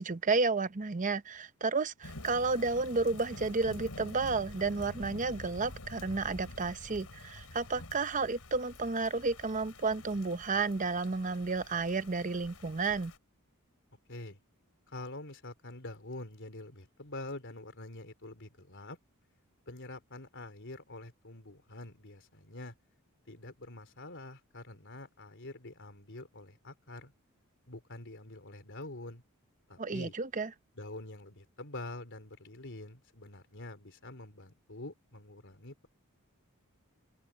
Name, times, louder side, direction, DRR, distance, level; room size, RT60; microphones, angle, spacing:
voice 1, 0.0-13.1 29.8-30.5, right 4 dB, 35° right, 0.8 m, -32 dB
Thunder / Rain, 2.0-13.2, left 2 dB, 85° left, 3.7 m, -48 dB
voice 2, 14.9-19.0 19.7-22.7 23.3-27.1 27.7-29.2 29.7-30.2 30.8-35.9, left 2 dB, 55° left, 3.9 m, -46 dB
open air
head